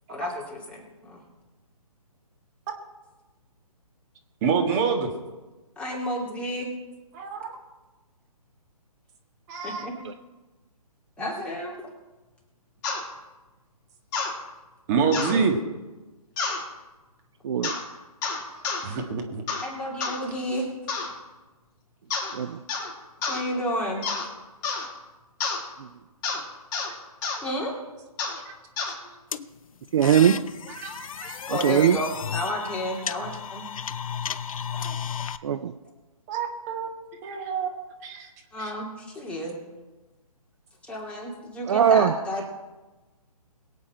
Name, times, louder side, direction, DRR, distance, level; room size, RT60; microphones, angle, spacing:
voice 1, 0.1-1.2 5.8-6.7 9.6-10.0 11.2-11.9 19.6-20.7 23.3-24.0 27.4-27.8 31.5-33.7 38.5-39.6 40.8-42.4, equal, 5° left, -3 dB, 2.6 m, -31 dB
voice 2, 4.4-5.1 7.1-7.5 9.5-9.9 14.9-15.6 18.5-19.4 28.4-28.6 30.8-31.4 34.8-34.9 36.3-36.9 37.2-37.7 38.0-38.3 38.6-38.7, right 5 dB, 25° right, 3 dB, 1.7 m, -27 dB
sound 1, 12.8-13.0 14.1-14.3 15.1-15.4 16.4-16.6 17.6-17.8 18.2-18.8 19.5-19.7 20.0-20.2 20.9-21.1 22.1-22.4 22.7-22.9 23.2-23.4 24.0-24.3 24.6-24.9 25.4-25.6 26.2-26.4 26.7-26.9 27.2-27.4 28.2-28.4 28.8-29.0, left 4 dB, 30° left, 3.5 m, -29 dB
sound 2, 29.3-35.4, left 7 dB, 60° left, 0.7 m, -33 dB
voice 3, 29.9-30.4 31.5-32.0 35.4-35.7 41.7-42.1, right 9 dB, 45° right, 11 dB, 0.6 m, -21 dB
22.5 x 8.2 x 4.4 m, 1.2 s
figure-of-eight pair, 145°, 20 cm